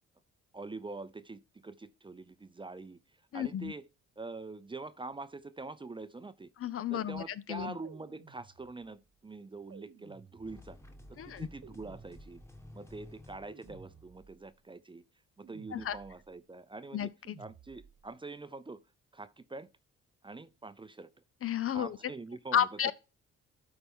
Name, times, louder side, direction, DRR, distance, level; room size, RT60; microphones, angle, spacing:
voice 1, 0.5-3.0 3.3-3.8 4.2-6.5 6.9-10.8 11.1-12.4 12.7-15.0 15.4-17.1 17.4-18.8 19.1-19.7 20.2-21.1 21.7-22.9, right 3 dB, 15° right, 0.6 m, -45 dB
voice 2, 3.3-3.7 6.6-7.2 7.5-7.8 11.2-11.5 15.7-16.0 16.9-17.4 21.4-22.0 22.5-22.9, left 10 dB, 50° left, 0.6 m, -32 dB
sound 1, 7.8-9.0 9.7-10.9 11.6-12.7 13.5-14.5 15.4-16.4 17.2-18.1, right 6 dB, 50° right, 1.1 m, -56 dB
sound 2, 10.4-14.2, left 1 dB, 10° left, 1.4 m, -53 dB
12.5 x 4.4 x 3.6 m
cardioid pair, 90°, 30 cm